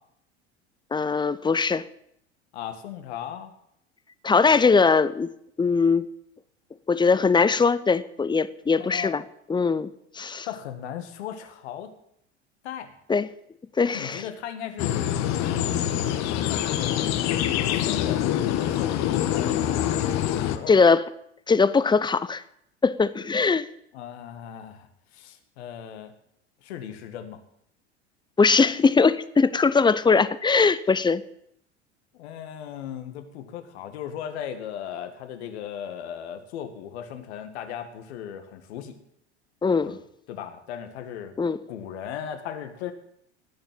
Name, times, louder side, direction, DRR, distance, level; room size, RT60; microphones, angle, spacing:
voice 1, 0.9-1.8 4.2-5.3 5.6-6.1 6.9-9.2 9.5-10.5 13.1-13.3 13.8-14.2 20.7-21.0 21.5-22.4 22.8-23.7 28.4-31.2 39.6-40.0 41.4-41.6, left 4 dB, 15° left, 15 dB, 0.7 m, -21 dB
voice 2, 2.5-3.5 8.8-9.2 10.5-11.9 12.6-13.0 13.9-15.8 16.2-20.8 23.9-24.9 25.1-26.1 26.6-27.4 32.1-39.0 39.8-40.0 40.3-41.3 41.7-42.9, left 9 dB, 70° left, 8 dB, 2.0 m, -37 dB
sound 1, 14.8-20.6, left 11 dB, 50° left, 1.4 m, -25 dB
18.0 x 6.9 x 7.6 m, 0.73 s
hypercardioid pair, 75°, 34 cm